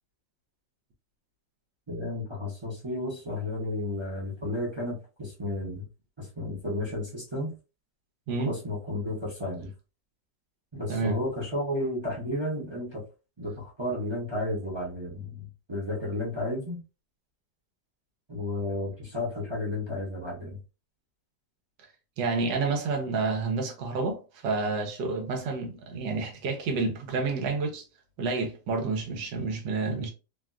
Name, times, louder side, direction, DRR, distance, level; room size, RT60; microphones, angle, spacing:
voice 1, 1.9-5.8 6.2-7.5 8.4-9.7 10.7-13.0 13.4-16.8 18.3-20.6, left 1 dB, 30° right, 0.5 m, -32 dB
voice 2, 22.2-27.8 28.2-30.1, right 4 dB, 90° right, 1.5 m, -29 dB
3.3 x 2.2 x 2.4 m
omnidirectional pair, 1.9 m